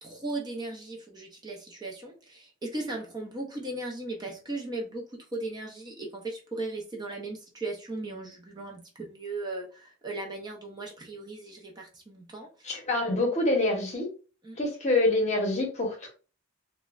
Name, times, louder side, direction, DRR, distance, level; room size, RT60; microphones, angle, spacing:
voice 1, 0.0-12.7 14.4-14.6, right 2 dB, 20° right, 0.5 m, -37 dB
voice 2, 12.6-14.1 14.6-16.1, left 2 dB, 35° left, 0.8 m, -26 dB
3.0 x 2.1 x 2.3 m
head